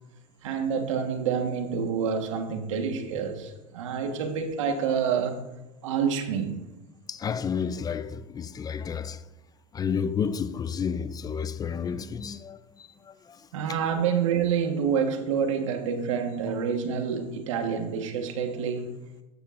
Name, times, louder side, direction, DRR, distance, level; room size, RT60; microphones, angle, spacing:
voice 1, 0.4-5.4 5.8-6.6 13.5-18.9, right 7 dB, 85° right, 1.4 m, -27 dB
voice 2, 7.1-9.2 9.7-13.5, left 6 dB, 25° left, 0.4 m, -31 dB
13.5 x 9.2 x 2.5 m
supercardioid pair, 100°, 16 cm